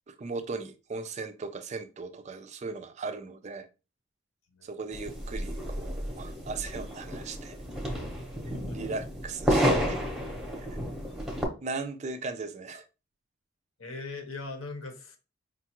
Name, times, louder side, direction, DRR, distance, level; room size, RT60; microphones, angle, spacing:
voice 1, 0.1-3.7 4.6-7.6 8.7-10.0 10.6-10.7 11.6-12.8, right 4 dB, 30° right, 0.3 m, -38 dB
sound 1, 4.9-11.4, equal, ahead, 0.7 m, -31 dB
voice 2, 13.8-15.2, left 3 dB, 70° left, 0.9 m, -40 dB
5.0 x 2.3 x 2.9 m
head